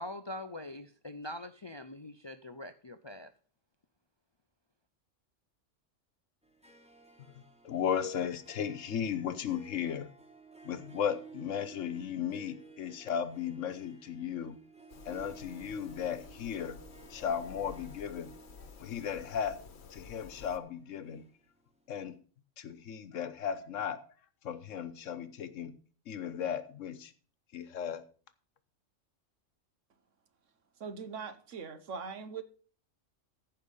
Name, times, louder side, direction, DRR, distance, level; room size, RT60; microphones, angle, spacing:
voice 1, 0.0-3.3, left 1 dB, 40° left, 0.4 m, -43 dB
Harp, 6.4-21.8, right 4 dB, 5° right, 1.4 m, -55 dB
voice 2, 7.6-10.1 10.6-14.6 15.0-16.8 17.1-18.3 18.8-19.6 19.9-21.3 21.9-22.2 22.6-24.0 24.4-25.8 26.1-27.1 27.5-28.0, left 8 dB, 85° left, 1.3 m, -35 dB
sound 1, 14.9-20.6, left 5 dB, 60° left, 1.2 m, -52 dB
voice 3, 30.8-32.4, right 5 dB, 75° right, 1.4 m, -41 dB
14.5 x 5.6 x 5.5 m
omnidirectional pair, 1.3 m